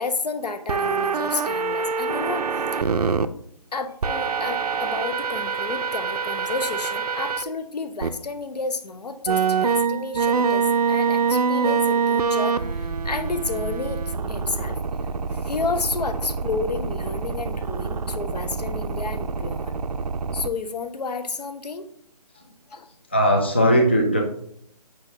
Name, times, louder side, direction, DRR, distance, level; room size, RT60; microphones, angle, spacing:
voice 1, 0.0-3.1 3.7-10.6 10.9-14.0 14.3-14.8 15.3-19.7 20.3-21.9 22.7-22.9, left 4 dB, 75° left, 9 dB, 0.9 m, -31 dB
sound 1, 0.7-3.3 4.0-7.4 8.0-8.1 9.3-20.5, right 5 dB, 70° right, 0.5 m, -25 dB
voice 2, 23.1-24.2, equal, 15° left, 1 dB, 0.3 m, -19 dB
7.8 x 5.5 x 2.7 m, 0.68 s
hypercardioid pair, 165°, 21 cm